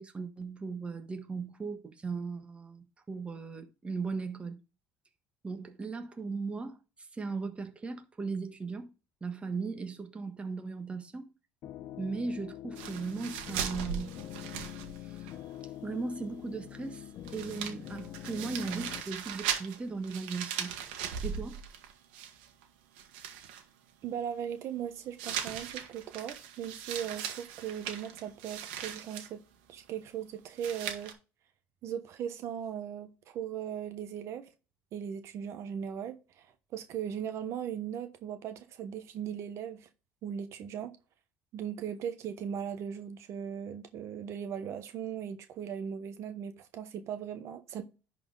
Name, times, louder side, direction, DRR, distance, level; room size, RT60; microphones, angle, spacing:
voice 1, 0.0-4.6 5.4-8.9 9.2-11.3 12.0-14.2 15.0-15.3 15.8-20.8 21.2-21.6, right 4 dB, 20° right, 1.4 m, -37 dB
sound 1, 11.6-19.0, left 12 dB, 60° left, 0.9 m, -45 dB
sound 2, 12.8-15.3 15.6-15.7 16.9-17.0 17.3-22.6 23.0-23.6 25.2-29.3 30.6-31.1, right 8 dB, 90° right, 1.6 m, -39 dB
voice 2, 24.0-29.4 29.7-31.1 31.8-34.5 34.9-36.5 36.7-39.9 40.2-40.9 41.5-47.8, right 8 dB, 60° right, 1.1 m, -38 dB
10.5 x 4.3 x 3.9 m
supercardioid pair, 95°, 5 cm